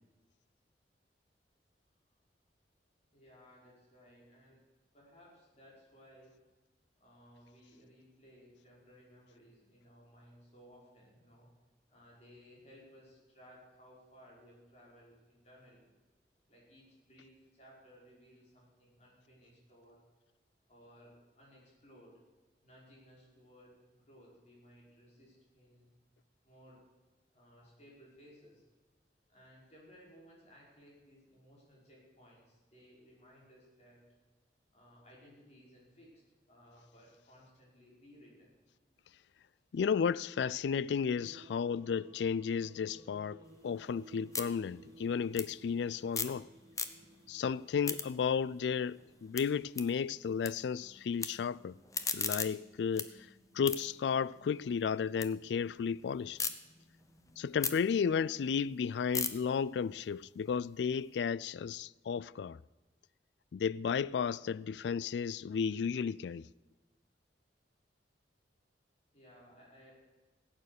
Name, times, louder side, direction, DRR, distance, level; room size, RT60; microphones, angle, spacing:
voice 1, 3.1-4.7 4.9-6.4 7.0-11.5 11.9-15.9 16.5-20.0 20.7-22.2 22.6-25.9 26.4-26.8 27.3-28.6 29.3-34.0 34.7-38.5 38.9-39.0 69.1-69.9, equal, 40° left, 5.5 m, -60 dB
voice 2, 39.7-46.5 47.3-51.8 52.1-53.1 53.5-56.4 57.4-62.6 63.5-66.4, left 6 dB, 75° left, 0.3 m, -33 dB
sound 1, 41.0-58.6, right 1 dB, 20° right, 2.8 m, -60 dB
sound 2, 43.5-46.4 46.7-47.3 47.6-50.5 50.8-51.3 51.7-55.3 55.7-56.5 57.0-61.1, left 6 dB, 20° left, 0.8 m, -40 dB
16.5 x 8.9 x 6.7 m
head